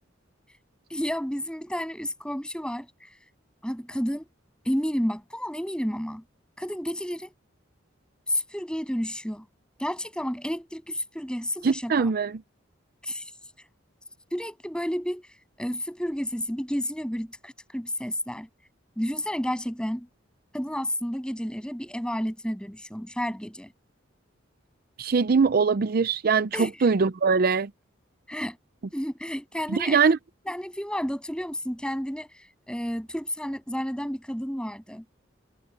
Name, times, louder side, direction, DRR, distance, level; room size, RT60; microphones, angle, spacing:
voice 1, 0.9-2.9 3.6-4.3 4.6-6.2 6.6-7.3 8.3-9.4 9.8-12.1 13.0-13.2 14.3-15.3 15.6-18.5 19.0-20.1 20.5-23.7 26.5-26.9 28.3-28.6 28.9-30.0 30.4-32.3 32.7-35.0, equal, 5° left, 7.7 m, -31 dB
voice 2, 11.6-12.3 25.0-27.7 29.7-30.2, right 5 dB, 50° right, 0.5 m, -22 dB
head